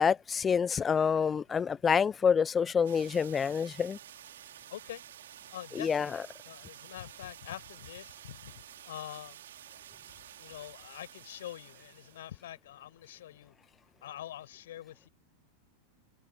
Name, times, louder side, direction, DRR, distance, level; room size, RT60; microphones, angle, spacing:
voice 1, 0.0-4.0 5.8-6.2, left 6 dB, 20° left, 0.6 m, -27 dB
sound 1, 2.8-12.3, right 11 dB, 60° right, 3.2 m, -51 dB
voice 2, 4.7-5.0 5.5-8.5 8.8-9.4 10.4-13.5 14.0-15.1, left 12 dB, 60° left, 6.1 m, -45 dB
figure-of-eight pair, 90°, 0 cm